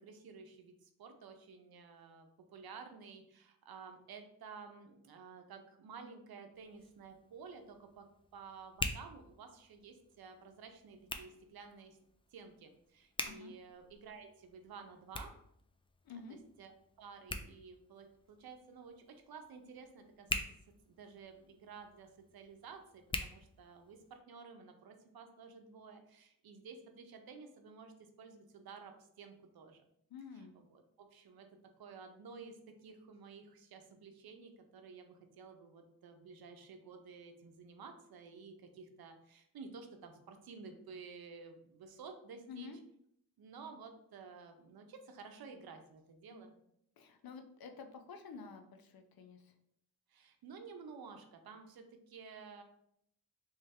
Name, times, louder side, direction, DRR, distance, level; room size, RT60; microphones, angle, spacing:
voice 1, 0.0-8.1 8.3-12.0 12.3-15.4 16.1-16.7 17.0-20.4 20.8-29.8 30.3-31.5 31.8-42.7 43.4-46.5 50.1-52.6, right 5 dB, 90° right, 6 dB, 0.7 m, -53 dB
Hands, 6.5-24.2, left 2 dB, 15° left, 0.3 m, -47 dB
voice 2, 13.2-13.6 16.0-16.4 30.1-30.5 42.5-42.8 46.3-46.5 47.0-49.5, left 5 dB, 85° left, 5 dB, 0.6 m, -50 dB
3.2 x 3.2 x 3.5 m, 0.73 s
wide cardioid pair, 120°, 35 cm